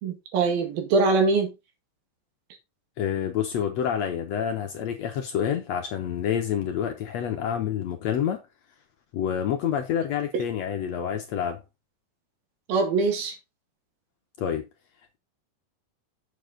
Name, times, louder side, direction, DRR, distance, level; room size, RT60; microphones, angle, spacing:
voice 1, 0.0-1.5 12.7-13.4, right 4 dB, 90° right, 3.8 m, -23 dB
voice 2, 3.0-8.4 9.1-11.6 14.4-14.7, left 9 dB, 70° left, 1.7 m, -28 dB
7.4 x 7.1 x 3.8 m
omnidirectional pair, 4.0 m